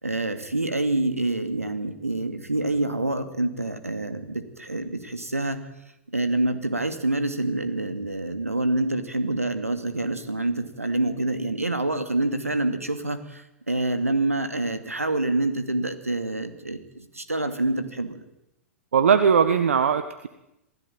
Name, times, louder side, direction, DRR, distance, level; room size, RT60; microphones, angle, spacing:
voice 1, 0.0-5.7 6.1-18.2, right 2 dB, 90° right, 9 dB, 2.7 m, -27 dB
voice 2, 18.9-20.3, right 7 dB, 70° right, 11 dB, 1.5 m, -19 dB
27.5 x 16.5 x 9.1 m, 0.90 s
figure-of-eight pair, 105°, 8 cm